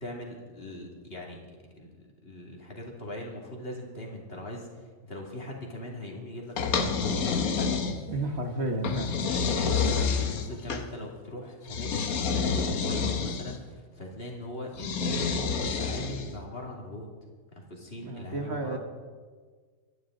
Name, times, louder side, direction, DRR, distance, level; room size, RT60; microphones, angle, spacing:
voice 1, 0.0-7.8 8.6-17.1 17.5-18.8, left 1 dB, 45° left, -1 dB, 2.8 m, -41 dB
sound 1, 6.6-8.2 8.8-10.9 11.7-13.6 14.8-16.4, left 5 dB, 85° left, 1.5 m, -28 dB
voice 2, 8.1-9.2 18.0-18.8, right 1 dB, 50° right, 4 dB, 1.5 m, -31 dB
24.5 x 11.0 x 3.9 m, 1.5 s
omnidirectional pair, 1.5 m